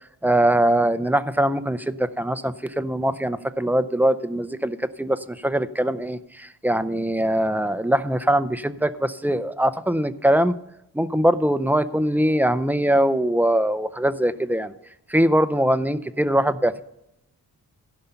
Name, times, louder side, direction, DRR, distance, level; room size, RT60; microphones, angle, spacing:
voice 1, 0.2-10.6 10.9-14.7 15.1-16.8, right 1 dB, 5° right, 13 dB, 0.5 m, -22 dB
16.0 x 5.6 x 5.6 m, 0.83 s
cardioid pair, 75°, 39 cm